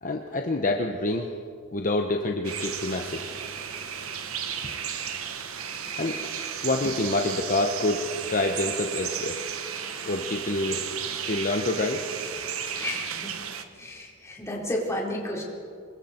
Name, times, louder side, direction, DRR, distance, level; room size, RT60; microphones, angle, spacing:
voice 1, 0.0-1.3 1.7-3.2 6.0-6.4 6.6-9.4 10.1-10.8 11.2-12.0, left 2 dB, 40° left, 3 dB, 1.1 m, -27 dB
sound 1, 2.4-13.6, right 8 dB, 70° right, 1.2 m, -34 dB
voice 2, 12.8-13.3 13.8-15.4, left 1 dB, 15° left, -3 dB, 4.3 m, -32 dB
26.5 x 22.0 x 4.5 m, 2.3 s
head